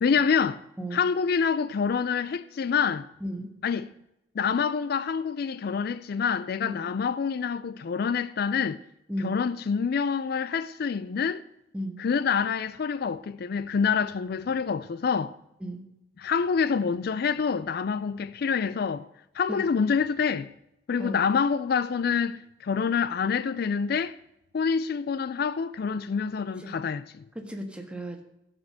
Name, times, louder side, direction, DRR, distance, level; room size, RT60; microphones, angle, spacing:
voice 1, 0.0-0.6 0.9-3.1 3.6-3.9 4.4-8.8 9.2-11.4 12.0-15.3 16.2-19.1 19.3-20.5 20.9-24.2 24.5-27.2, left 6 dB, 55° left, 0.4 m, -27 dB
voice 2, 3.2-3.5 6.6-6.9 9.1-9.3 11.7-12.0 15.6-15.8 19.5-19.7 21.0-21.2 26.4-26.7 27.3-28.2, equal, 5° right, 1.4 m, -35 dB
15.0 x 5.0 x 7.6 m
head